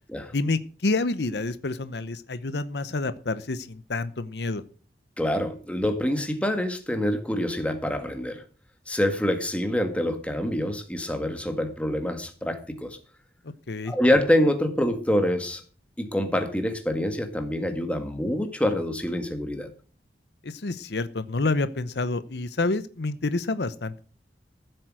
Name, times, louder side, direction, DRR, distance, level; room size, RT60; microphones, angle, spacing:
voice 1, 0.3-4.6 13.7-13.9 20.4-24.0, left 3 dB, 75° left, 14 dB, 0.8 m, -28 dB
voice 2, 5.2-8.4 8.9-13.0 13.9-15.6 16.0-19.7, left 1 dB, 5° left, 6 dB, 1.8 m, -26 dB
15.0 x 7.8 x 6.2 m, 0.40 s
head